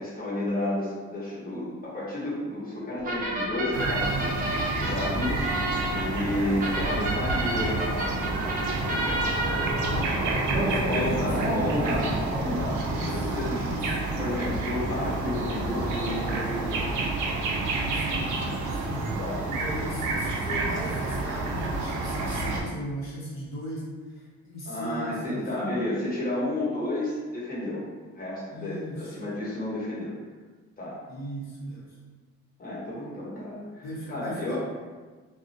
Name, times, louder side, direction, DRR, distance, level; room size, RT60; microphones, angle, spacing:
voice 1, 0.0-4.3 4.8-5.5 5.9-7.8 10.6-13.8 14.2-17.2 19.2-19.4 24.6-27.9 28.1-30.1 30.8-31.0 32.6-34.6, left 1 dB, 30° left, -7 dB, 0.9 m, -31 dB
sound 1, 3.0-13.4, right 1 dB, 30° right, 0.6 m, -31 dB
sound 2, 3.7-22.6, right 2 dB, 80° right, 0.5 m, -29 dB
voice 2, 9.8-10.2 10.5-11.8 12.9-13.3 13.6-14.0 17.8-19.2 19.5-25.7 28.5-29.2 31.1-32.0 33.8-34.6, equal, 60° left, -6 dB, 0.7 m, -38 dB
2.3 x 2.0 x 2.6 m, 1.4 s
cardioid pair, 90°, 30 cm